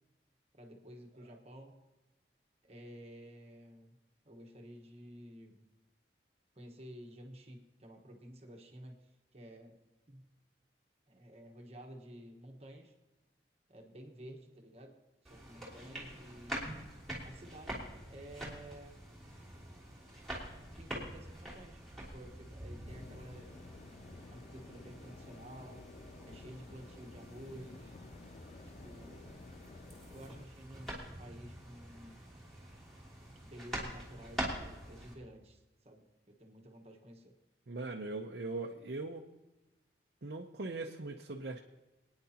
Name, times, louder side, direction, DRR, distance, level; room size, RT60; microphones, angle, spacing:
voice 1, 0.5-1.8 2.6-4.0 4.2-5.6 6.5-9.8 10.1-10.3 11.1-12.9 13.7-15.0 15.2-16.7 17.2-19.0 20.8-21.8 22.1-23.7 24.3-25.9 26.2-27.9 28.6-29.4 30.1-32.3 33.4-37.4, equal, 35° right, 2 dB, 1.3 m, -52 dB
sound 1, 15.2-35.1, right 1 dB, ahead, 3.0 m, -46 dB
sound 2, 22.9-30.5, left 3 dB, 40° left, 0.4 m, -53 dB
voice 2, 37.7-39.2 40.2-41.6, right 3 dB, 65° right, 1 dB, 0.7 m, -40 dB
26.0 x 9.7 x 2.9 m, 1.1 s
head